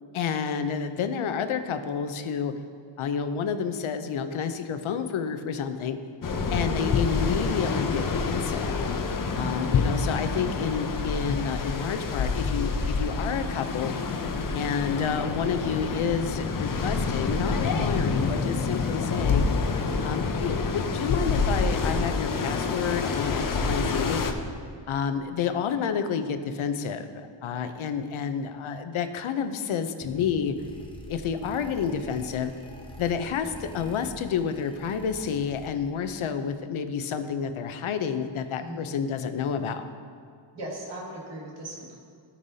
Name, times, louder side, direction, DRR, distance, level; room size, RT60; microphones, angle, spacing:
voice 1, 0.1-2.5 3.0-6.0 6.5-8.7 9.4-13.9 14.5-19.5 20.0-24.2 24.9-30.5 31.1-32.5 33.0-39.9, left 7 dB, 85° left, 9 dB, 0.7 m, -29 dB
sound 1, 6.2-24.3, left 4 dB, 45° left, 0.6 m, -27 dB
voice 2, 6.3-6.8 9.2-9.7 38.6-39.0 40.5-42.0, right 1 dB, 60° right, -3 dB, 2.1 m, -39 dB
sound 2, 30.0-36.1, equal, 10° left, 0.8 m, -45 dB
16.0 x 5.5 x 2.7 m, 2.2 s
wide cardioid pair, 145°, 47 cm